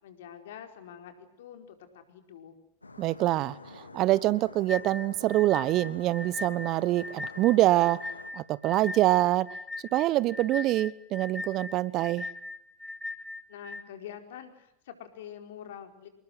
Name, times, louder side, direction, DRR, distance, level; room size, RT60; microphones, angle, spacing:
voice 1, 0.0-2.5 13.5-16.1, left 9 dB, 65° left, 4.7 m, -46 dB
sound 1, 2.8-8.3, left 3 dB, 90° left, 2.1 m, -47 dB
voice 2, 3.0-8.0 8.3-9.5 9.9-12.3, right 16 dB, 45° right, 1.1 m, -25 dB
sound 2, 4.7-13.8, left 2 dB, 5° left, 1.9 m, -39 dB
27.5 x 21.0 x 7.9 m
figure-of-eight pair, 85°, 0 cm